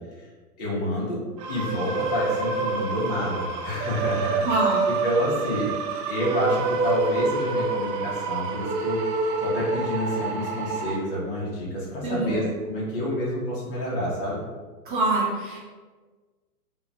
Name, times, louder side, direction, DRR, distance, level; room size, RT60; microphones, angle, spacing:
voice 1, 0.6-1.2 1.5-4.6 5.0-5.7 6.1-9.0 9.4-14.4, equal, 35° left, -6 dB, 0.7 m, -28 dB
sound 1, 1.4-11.0, right 3 dB, 75° right, 0.6 m, -27 dB
voice 2, 4.4-4.9 12.0-12.4 14.9-15.6, right 2 dB, 35° right, -5 dB, 0.6 m, -24 dB
2.9 x 2.1 x 2.4 m, 1.4 s
hypercardioid pair, 160°, 48 cm